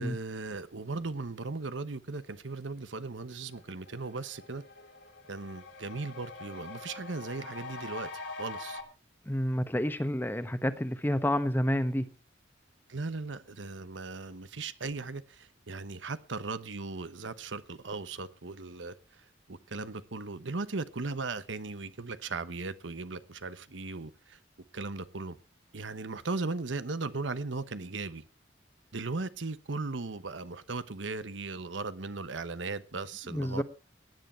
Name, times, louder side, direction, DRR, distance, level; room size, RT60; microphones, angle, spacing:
voice 1, 0.0-4.6 5.3-8.1 8.4-8.8 12.9-24.4 24.7-25.4 25.7-28.2 28.9-33.6, right 3 dB, 90° right, 1.0 m, -37 dB
sound 1, 3.0-3.1 3.5-8.8, left 3 dB, 80° left, 3.3 m, -44 dB
voice 2, 9.3-12.1 33.3-33.6, equal, 10° left, 1.1 m, -29 dB
18.5 x 10.5 x 4.4 m
head